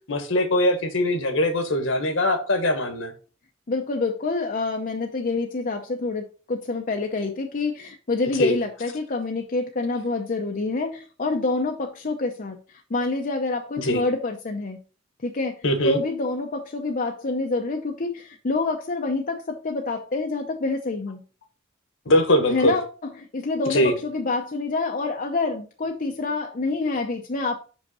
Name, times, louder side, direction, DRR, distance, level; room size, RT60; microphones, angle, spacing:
voice 1, 0.1-3.1 8.4-8.6 13.8-14.0 15.6-16.0 22.0-22.7 23.7-24.0, left 1 dB, 70° left, 1.4 m, -21 dB
voice 2, 3.7-12.6 12.9-14.8 15.2-15.6 15.8-21.2 22.5-27.6, left 3 dB, 45° left, 0.7 m, -27 dB
5.7 x 5.3 x 4.2 m
head